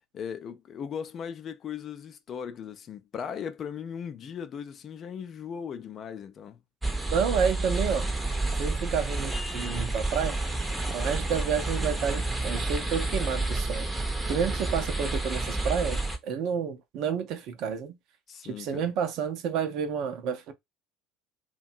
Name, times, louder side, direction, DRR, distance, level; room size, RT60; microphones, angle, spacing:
voice 1, 0.1-6.6 18.3-18.9, left 7 dB, 40° left, 0.4 m, -38 dB
sound 1, 6.8-16.2, right 2 dB, 10° right, 0.6 m, -30 dB
voice 2, 7.1-8.1 8.6-10.4 10.9-13.9 14.3-17.9 18.4-20.5, right 7 dB, 55° right, 0.5 m, -30 dB
2.6 x 2.2 x 2.5 m
figure-of-eight pair, 65°, 0 cm